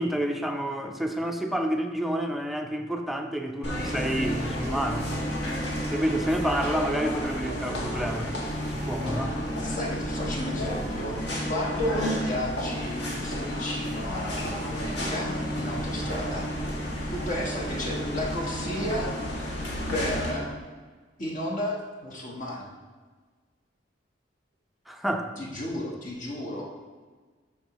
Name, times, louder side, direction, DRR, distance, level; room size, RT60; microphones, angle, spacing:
voice 1, 0.0-5.2 5.9-8.3 8.6-9.4 24.9-25.3, right 1 dB, ahead, 4 dB, 0.5 m, -29 dB
sound 1, 3.6-20.3, equal, 65° left, 1.9 m, -31 dB
voice 2, 9.5-11.2 11.5-15.3 15.6-16.5 17.1-19.4 19.9-20.5 21.2-22.7 25.4-26.7, left 1 dB, 45° left, -3 dB, 1.2 m, -33 dB
12.5 x 4.7 x 3.0 m, 1.4 s
head